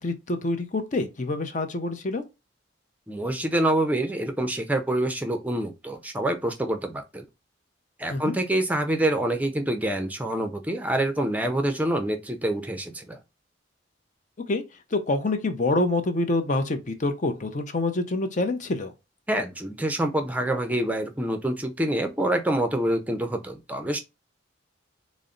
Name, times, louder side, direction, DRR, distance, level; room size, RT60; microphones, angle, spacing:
voice 1, 0.0-2.2 8.1-8.4 14.5-14.6 14.9-18.9, left 2 dB, 40° left, 0.6 m, -26 dB
voice 2, 3.1-7.3 8.0-13.2 19.3-24.0, right 1 dB, 10° right, 0.5 m, -26 dB
4.0 x 2.1 x 3.7 m
head